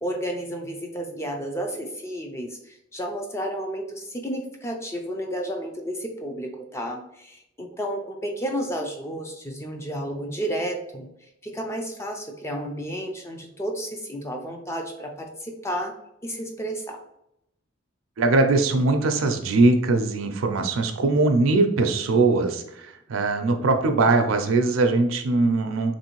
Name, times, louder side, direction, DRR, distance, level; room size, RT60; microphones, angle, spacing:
voice 1, 0.0-15.9 16.2-17.0, equal, 15° left, 3 dB, 0.3 m, -32 dB
voice 2, 18.2-25.9, right 3 dB, 90° right, 5 dB, 0.4 m, -21 dB
3.1 x 2.6 x 2.9 m, 0.80 s
head